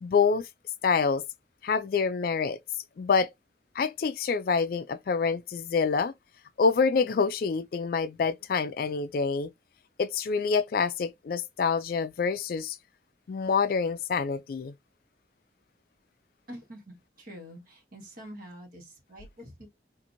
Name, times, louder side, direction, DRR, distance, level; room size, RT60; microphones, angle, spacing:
voice 1, 0.0-0.5 0.8-1.2 1.6-2.6 3.0-3.3 3.8-6.1 6.6-9.5 10.0-12.8 13.3-14.7, left 5 dB, 50° left, 0.3 m, -26 dB
voice 2, 16.5-19.7, equal, 50° right, 1.4 m, -46 dB
2.9 x 2.5 x 2.5 m
head